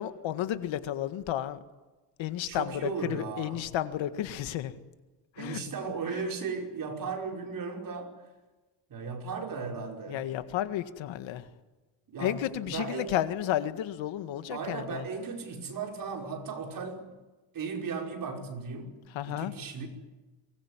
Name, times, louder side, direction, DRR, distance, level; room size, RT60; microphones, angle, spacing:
voice 1, 0.0-1.6 2.2-4.7 5.4-5.6 6.1-6.2 10.1-11.5 12.2-15.1 19.1-19.5, left 12 dB, 70° left, 1.9 m, -32 dB
voice 2, 2.5-3.6 5.4-8.1 8.9-10.3 12.1-13.1 14.5-17.1 17.5-19.0 19.3-19.9, right 5 dB, 45° right, 5.3 m, -36 dB
24.0 x 21.0 x 9.8 m
cardioid pair, 150°, 48 cm